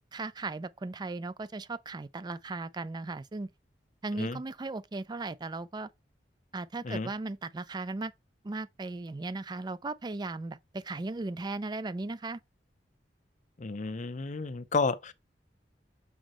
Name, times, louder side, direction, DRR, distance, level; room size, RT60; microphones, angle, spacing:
voice 1, 0.1-3.5 4.0-5.9 6.5-8.1 8.4-12.4, right 3 dB, 25° right, 0.4 m, -37 dB
voice 2, 13.6-15.1, left 4 dB, 45° left, 0.6 m, -31 dB
6.3 x 4.9 x 3.0 m
head